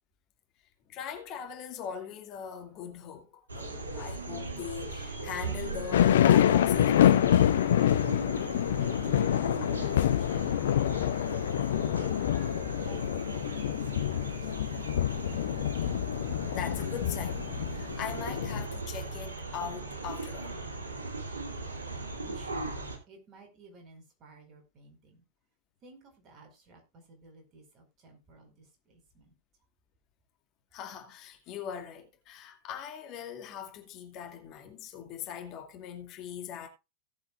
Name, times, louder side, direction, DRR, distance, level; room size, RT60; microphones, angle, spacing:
voice 1, 0.9-7.3 16.5-20.6 30.7-36.7, left 8 dB, 40° left, 2.3 m, -41 dB
sound 1, 3.5-23.0, right 3 dB, 75° right, 2.7 m, -38 dB
sound 2, 5.9-18.7, left 11 dB, 60° left, 0.6 m, -26 dB
voice 2, 8.7-15.2 21.9-25.2 25.8-29.3, right 2 dB, 35° right, 4.7 m, -55 dB
18.0 x 7.7 x 2.5 m
figure-of-eight pair, 90°, 0 cm